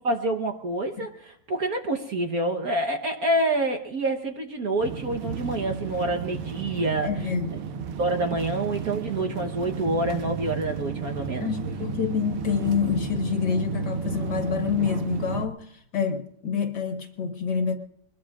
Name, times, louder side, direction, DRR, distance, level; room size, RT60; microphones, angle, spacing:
voice 1, 0.0-7.1 8.0-11.5, right 2 dB, 50° right, 3 dB, 1.3 m, -27 dB
sound 1, 4.8-15.5, right 6 dB, 90° right, 1.9 m, -33 dB
voice 2, 7.0-7.5 11.4-17.8, left 6 dB, 55° left, 5 dB, 1.9 m, -27 dB
23.0 x 20.5 x 2.4 m, 0.71 s
omnidirectional pair, 2.4 m